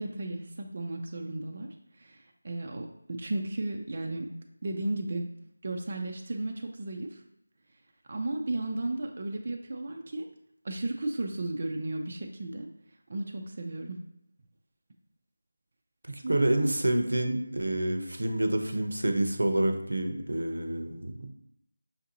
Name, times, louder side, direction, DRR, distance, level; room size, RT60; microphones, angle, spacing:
voice 1, 0.0-1.7 2.0-4.3 4.6-5.3 5.6-7.2 8.1-10.3 10.6-12.7 13.1-14.0 16.2-16.7, right 2 dB, 35° right, 2 dB, 0.3 m, -34 dB
voice 2, 16.1-21.3, right 1 dB, 85° right, 6 dB, 0.6 m, -28 dB
5.7 x 2.6 x 2.8 m, 0.79 s
figure-of-eight pair, 175°, 0 cm